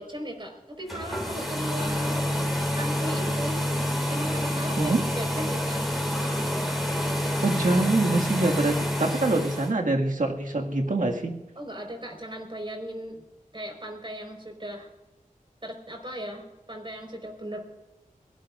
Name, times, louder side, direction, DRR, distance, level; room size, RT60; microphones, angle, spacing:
voice 1, 0.0-2.3 2.7-3.6 4.1-5.9 9.0-9.4 11.5-13.2 13.5-14.9 15.6-17.6, equal, 35° right, 3 dB, 4.8 m, -37 dB
sound 1, 0.8-9.7, equal, ahead, 5.5 m, -28 dB
voice 2, 7.4-11.3, right 2 dB, 70° right, 1 dB, 2.0 m, -25 dB
22.0 x 18.5 x 2.5 m, 0.99 s
wide cardioid pair, 50°, 14 cm